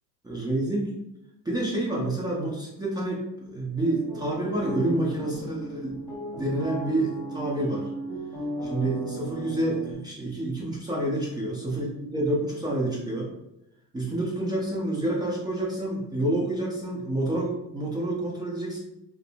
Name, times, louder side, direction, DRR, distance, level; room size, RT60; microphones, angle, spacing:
voice 1, 0.2-0.9 1.4-6.0 6.3-7.9 8.7-13.3 13.9-18.8, right 1 dB, 10° right, -5 dB, 0.6 m, -28 dB
sound 1, 3.8-9.9, right 2 dB, 10° left, 1.3 m, -35 dB
3.6 x 2.0 x 2.2 m, 0.87 s
supercardioid pair, 95°, 42 cm